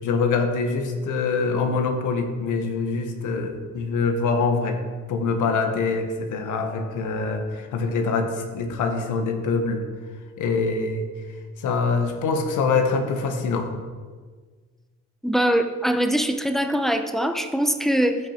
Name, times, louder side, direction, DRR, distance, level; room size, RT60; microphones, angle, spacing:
voice 1, 0.0-4.8 5.1-9.8 10.4-11.1 11.6-13.7, left 4 dB, 80° left, 5 dB, 1.5 m, -24 dB
voice 2, 15.2-18.2, equal, ahead, 6 dB, 1.0 m, -22 dB
15.0 x 5.9 x 4.5 m, 1.5 s
cardioid pair, 90°, 30 cm